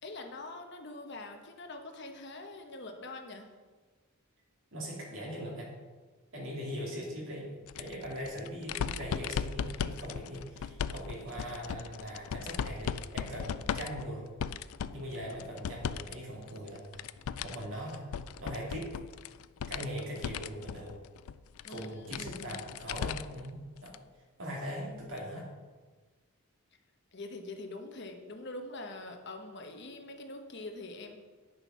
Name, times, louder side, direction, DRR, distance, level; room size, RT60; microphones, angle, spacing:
voice 1, 0.0-3.5 21.6-22.6 27.1-31.2, left 2 dB, 55° left, 4 dB, 1.1 m, -44 dB
voice 2, 4.7-5.7 6.3-7.5 7.8-14.2 14.9-17.0 17.4-18.1 18.4-19.0 19.7-20.9 21.7-24.0 24.4-25.5, equal, 65° right, -3 dB, 2.9 m, -40 dB
sound 1, 7.7-16.1 16.5-23.5 23.9-24.0 25.2-25.3, left 7 dB, 80° left, 0.4 m, -38 dB
10.0 x 6.8 x 5.7 m, 1.4 s
head